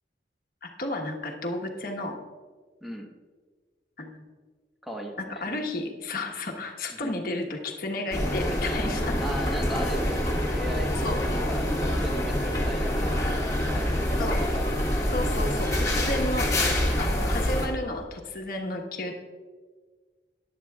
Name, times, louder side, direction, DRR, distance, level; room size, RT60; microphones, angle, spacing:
voice 1, 0.6-2.2 4.0-4.2 5.2-9.2 11.0-11.2 14.2-14.4 15.1-16.5 17.0-19.1, left 2 dB, 55° left, 2 dB, 1.3 m, -32 dB
voice 2, 4.8-5.4 6.9-7.2 9.0-11.0 11.5-13.2 13.6-14.7, equal, ahead, 1 dB, 1.1 m, -37 dB
airport ambience, 8.1-17.7, left 1 dB, 20° left, 2.0 m, -26 dB
14.5 x 10.5 x 2.4 m, 1.5 s
head